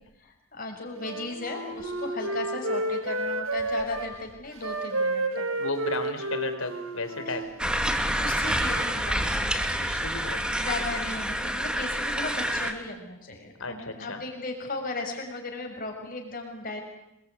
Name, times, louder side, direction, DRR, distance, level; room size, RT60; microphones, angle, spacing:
voice 1, 0.2-5.5 7.2-7.3 8.1-9.7 10.6-16.8, left 2 dB, 45° left, 3 dB, 6.6 m, -36 dB
Wind instrument woodwind instrument, 1.0-4.1 4.5-8.0, right 2 dB, 85° right, 4.2 m, -31 dB
voice 2, 5.6-7.4 9.8-10.4 13.6-14.2, left 3 dB, 75° left, 8 dB, 4.2 m, -34 dB
sound 1, 7.6-12.7, equal, 5° right, 2.3 m, -28 dB
27.5 x 21.5 x 9.7 m, 0.86 s
head